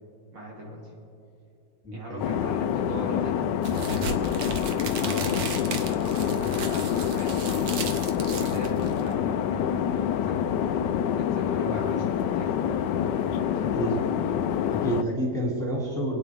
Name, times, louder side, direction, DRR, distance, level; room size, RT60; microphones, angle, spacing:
voice 1, 0.3-0.9 1.9-3.5 3.9-4.4 5.0-10.4 11.1-13.5 14.0-14.1, right 1 dB, 80° right, -4 dB, 3.6 m, -40 dB
voice 2, 1.8-2.3 5.0-5.3 11.5-11.8 13.6-14.0 14.7-16.2, right 1 dB, ahead, -4 dB, 2.5 m, -30 dB
sound 1, 2.2-15.0, left 9 dB, 75° left, 1.2 m, -26 dB
sound 2, 3.6-9.1, right 5 dB, 60° right, 1.3 m, -35 dB
28.5 x 9.5 x 3.5 m, 2.6 s
omnidirectional pair, 1.9 m